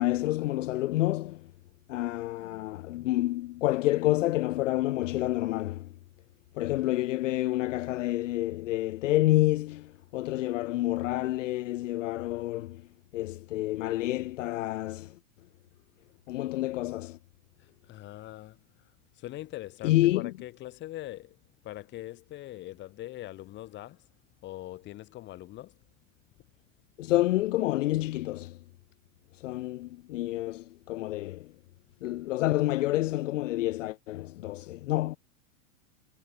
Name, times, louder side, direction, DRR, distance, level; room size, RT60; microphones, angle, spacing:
voice 1, 0.0-1.5 1.9-5.9 6.5-12.9 13.1-15.2 16.3-17.2 19.8-20.3 27.0-28.6 29.3-31.5 32.0-35.2, left 16 dB, 65° left, 0.7 m, -28 dB
voice 2, 17.6-24.1 24.4-25.8, left 15 dB, 25° left, 3.0 m, -43 dB
hypercardioid pair, 145°, 40 cm